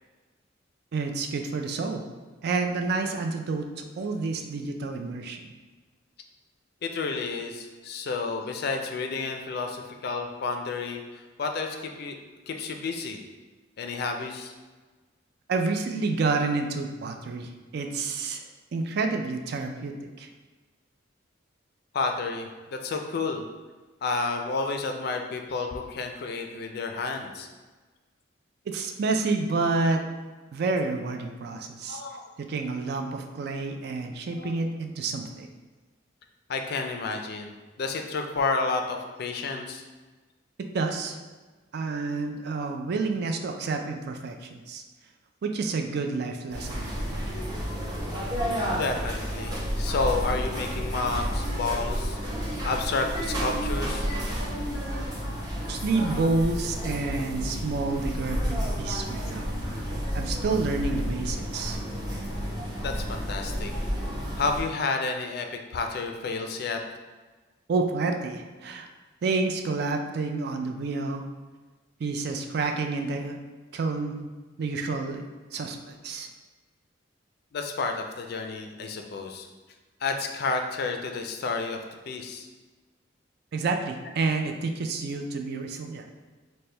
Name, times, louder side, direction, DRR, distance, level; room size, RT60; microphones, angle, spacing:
voice 1, 0.9-2.0 2.4-5.5 15.5-18.4 18.7-20.3 28.7-30.0 30.5-32.0 32.4-35.5 40.7-41.2 41.7-44.8 45.4-47.2 55.7-61.8 67.7-68.9 69.2-71.2 72.0-73.4 73.7-74.2 74.6-75.2 75.5-76.3 83.5-86.0, right 3 dB, 55° right, 5 dB, 0.3 m, -29 dB
voice 2, 6.8-12.2 12.5-13.2 13.8-14.5 21.9-23.4 24.0-27.5 31.8-32.3 34.4-34.5 36.5-37.5 37.8-39.8 48.7-54.1 62.8-63.7 64.4-66.8 77.5-79.5 80.0-81.8 82.1-82.5, left 4 dB, 55° left, 4 dB, 0.4 m, -31 dB
sound 1, 46.5-64.6, equal, 20° right, 0.8 m, -31 dB
4.3 x 2.2 x 3.2 m, 1.3 s
head